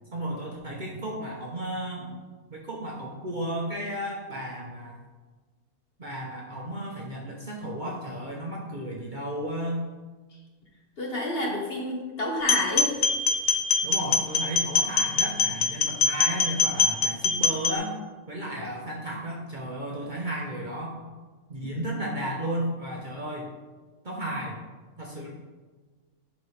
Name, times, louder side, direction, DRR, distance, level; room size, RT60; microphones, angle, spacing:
voice 1, 0.1-2.2 2.5-5.0 6.0-9.8 13.8-18.0 18.3-21.0 21.5-23.5 24.0-24.6 25.0-25.3, right 1 dB, 40° right, -2 dB, 0.9 m, -33 dB
voice 2, 11.0-13.0, left 1 dB, 45° left, -1 dB, 1.2 m, -29 dB
sound 1, 12.4-17.8, left 5 dB, 65° left, 0.7 m, -23 dB
11.0 x 4.2 x 3.3 m, 1.3 s
omnidirectional pair, 1.6 m